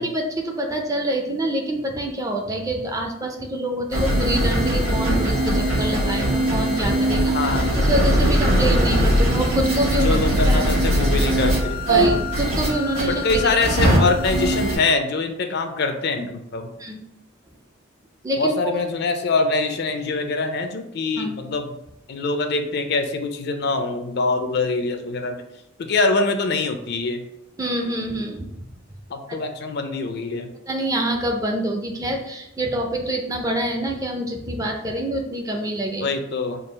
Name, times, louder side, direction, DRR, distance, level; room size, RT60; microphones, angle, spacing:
voice 1, 0.0-7.5 7.8-10.2 10.4-10.6 11.9-13.3 13.9-14.0 16.8-17.0 18.2-18.5 21.2-21.4 27.6-28.5 30.7-36.1, right 1 dB, 15° right, 2 dB, 0.4 m, -26 dB
sound 1, 3.9-14.8, equal, 90° right, 1.4 m, -20 dB
voice 2, 7.3-7.7 10.0-12.2 13.0-16.7 18.4-21.6 22.1-25.4 25.8-27.2 29.1-30.5 36.0-36.6, left 3 dB, 50° left, 6 dB, 0.4 m, -24 dB
3.8 x 2.3 x 3.9 m, 0.80 s
head